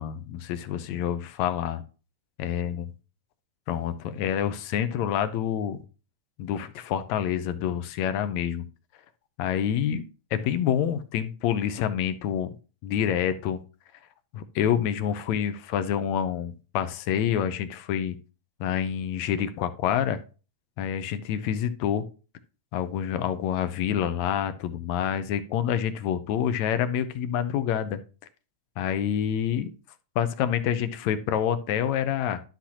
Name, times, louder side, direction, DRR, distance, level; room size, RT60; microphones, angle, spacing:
voice 1, 0.0-1.8 2.4-2.9 3.7-5.8 6.4-8.6 9.4-10.0 10.3-12.5 12.8-13.6 14.3-18.2 18.6-20.2 20.8-22.1 22.7-28.0 28.8-29.7 30.2-32.4, left 9 dB, 75° left, 11 dB, 1.9 m, -27 dB
11.5 x 6.2 x 2.9 m, 0.35 s
omnidirectional pair, 3.4 m